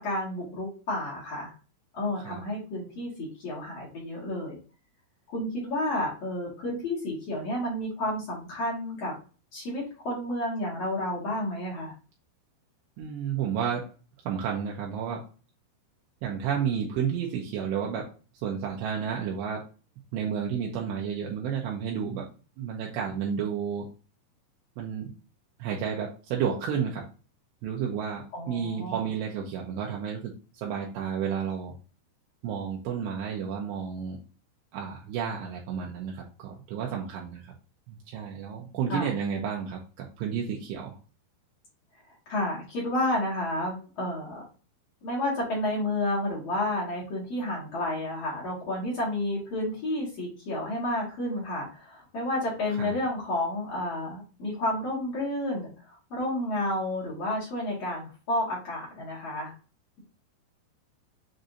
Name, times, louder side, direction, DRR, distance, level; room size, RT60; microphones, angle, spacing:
voice 1, 0.0-1.5 1.9-4.6 5.3-9.1 9.5-11.9 28.3-29.0 38.9-39.1 42.2-44.4 45.0-55.7 56.1-59.5, left 1 dB, 65° left, -6 dB, 1.5 m, -31 dB
voice 2, 13.0-13.9 14.3-15.3 16.2-18.1 18.4-19.7 20.1-22.3 22.6-23.9 24.8-25.1 25.6-27.1 27.6-31.7 32.4-34.2 34.7-37.5 37.9-41.0 52.8-52.9, right 7 dB, 85° right, -1 dB, 2.5 m, -31 dB
7.6 x 2.6 x 2.6 m, 0.35 s
omnidirectional pair, 5.6 m